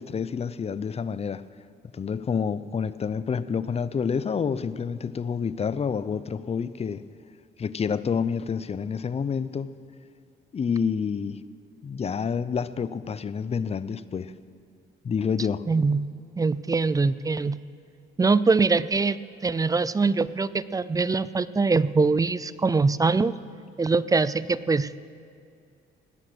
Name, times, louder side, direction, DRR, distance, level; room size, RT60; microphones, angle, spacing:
voice 1, 0.0-1.4 1.9-7.0 7.6-9.7 10.5-11.4 11.8-14.3 15.0-15.6, left 6 dB, 30° left, 15 dB, 0.5 m, -28 dB
voice 2, 15.7-16.1 16.4-17.6 18.2-19.2 19.4-23.3 23.8-25.0, right 4 dB, 20° right, 17 dB, 0.4 m, -23 dB
18.5 x 9.8 x 6.2 m, 2.4 s
cardioid pair, 90°, 20 cm